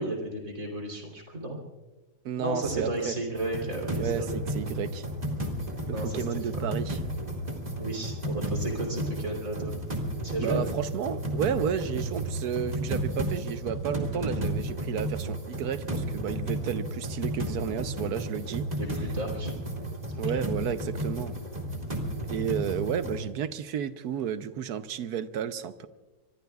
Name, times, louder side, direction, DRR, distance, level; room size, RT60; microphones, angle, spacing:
voice 1, 0.0-1.6 2.4-4.3 5.9-6.6 7.7-9.8 10.2-10.6 17.9-18.0 18.8-19.5 20.1-20.4, right 1 dB, 55° right, 1 dB, 3.8 m, -33 dB
voice 2, 2.2-3.1 4.0-5.0 5.9-7.0 10.4-18.7 20.1-21.4 22.3-25.9, right 8 dB, 70° right, 11 dB, 1.3 m, -32 dB
sound 1, 3.3-23.2, right 1 dB, 25° right, 2.3 m, -33 dB
25.5 x 23.0 x 2.4 m, 1.2 s
omnidirectional pair, 1.7 m